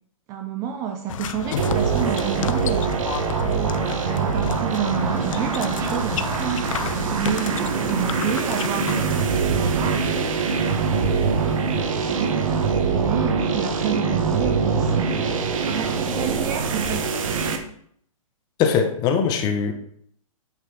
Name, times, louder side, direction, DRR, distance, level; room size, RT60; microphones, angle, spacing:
voice 1, 0.3-3.0 3.4-10.0 10.6-15.1 15.7-17.0, right 8 dB, 20° right, 5 dB, 0.4 m, -30 dB
sound 1, 1.1-9.4, left 10 dB, 65° left, 0.5 m, -32 dB
sound 2, 1.6-17.6, right 5 dB, 65° right, 1.3 m, -23 dB
voice 2, 18.6-19.7, left 6 dB, 20° left, 6 dB, 0.9 m, -21 dB
8.9 x 3.8 x 4.9 m, 0.65 s
hypercardioid pair, 155°, 18 cm